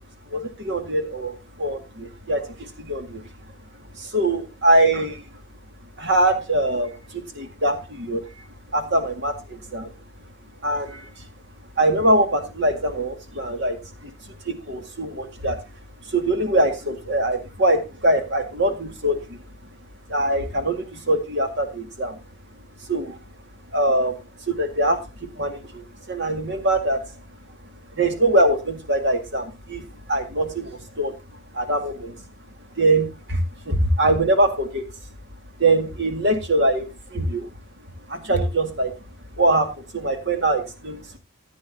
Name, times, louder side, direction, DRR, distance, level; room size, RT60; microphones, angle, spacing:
voice 1, 0.3-3.2 4.0-5.2 6.0-8.2 8.7-9.9 10.6-11.1 11.8-15.6 16.1-19.4 20.1-22.2 22.9-23.2 23.7-27.1 27.9-31.2 31.5-32.2 32.8-34.9 35.6-37.5 38.1-39.0 39.4-41.2, right 1 dB, 50° right, 6 dB, 2.1 m, -23 dB
15.0 x 9.3 x 2.8 m, 0.25 s
head